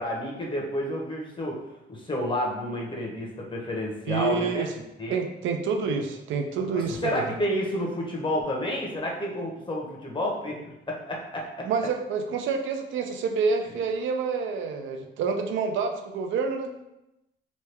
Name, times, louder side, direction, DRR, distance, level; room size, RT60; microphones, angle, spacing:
voice 1, 0.0-1.6 1.9-4.7 5.0-5.2 6.7-11.7, left 1 dB, 25° left, -2 dB, 0.8 m, -30 dB
voice 2, 4.1-4.7 5.1-7.2 11.6-16.7, right 5 dB, 80° right, 5 dB, 0.5 m, -28 dB
3.0 x 2.2 x 3.3 m, 0.91 s
cardioid pair, 90°, 20 cm